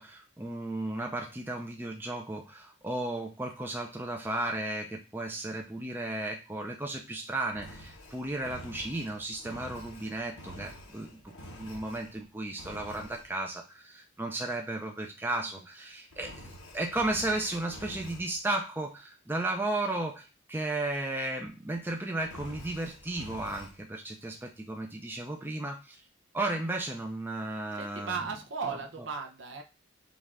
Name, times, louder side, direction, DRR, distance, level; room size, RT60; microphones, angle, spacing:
voice 1, 0.0-26.0 26.3-28.2 28.7-28.8, right 2 dB, 10° right, 2 dB, 0.5 m, -34 dB
Engine, 7.5-12.2 12.6-13.3 16.1-18.4 22.2-23.8, equal, 85° left, 1.1 m, -47 dB
voice 2, 27.8-29.6, right 5 dB, 60° right, 3 dB, 0.7 m, -36 dB
5.3 x 2.5 x 3.5 m, 0.29 s
head